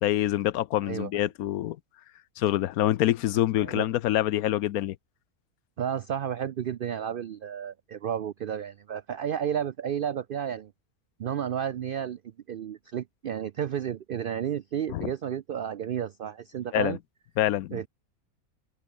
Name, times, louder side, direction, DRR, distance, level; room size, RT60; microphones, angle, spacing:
voice 1, 0.0-1.8 2.4-5.0 14.9-15.1 16.7-17.0 17.4-17.9, left 13 dB, 80° left, 1.1 m, -26 dB
voice 2, 0.8-1.2 3.6-3.9 5.8-10.7 11.2-12.2 12.5-17.0 17.7-17.9, right 9 dB, 80° right, 0.4 m, -32 dB
open air
omnidirectional pair, 1.5 m